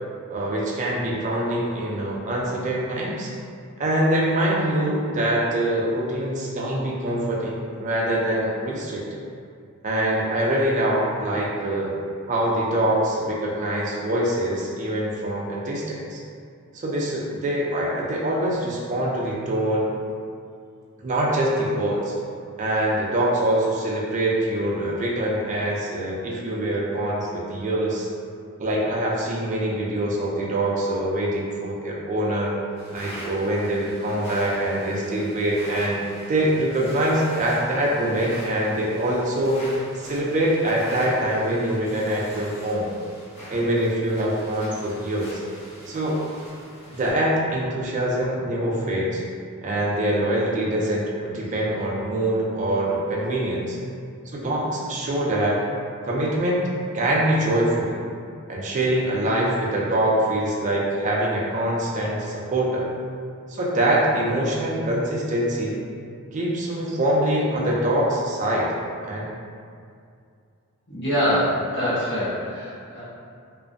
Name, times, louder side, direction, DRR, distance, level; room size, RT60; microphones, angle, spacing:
voice 1, 0.3-3.3 3.8-9.0 9.8-11.9 12.3-16.2 16.7-19.9 21.0-22.1 22.6-28.1 28.6-32.5 32.9-36.0 36.3-39.6 40.0-42.9 43.5-45.4 45.9-46.2 46.9-49.2 49.6-53.8 54.3-55.6 56.1-56.6 56.9-58.0 58.5-62.9 63.5-65.8 66.3-68.7 69.0-69.3, right 1 dB, 35° right, -3 dB, 0.4 m, -24 dB
sound 1, 32.8-47.1, equal, 30° left, 0.9 m, -43 dB
voice 2, 70.9-73.0, equal, 55° left, -12 dB, 1.1 m, -24 dB
2.5 x 2.0 x 2.5 m, 2.3 s
head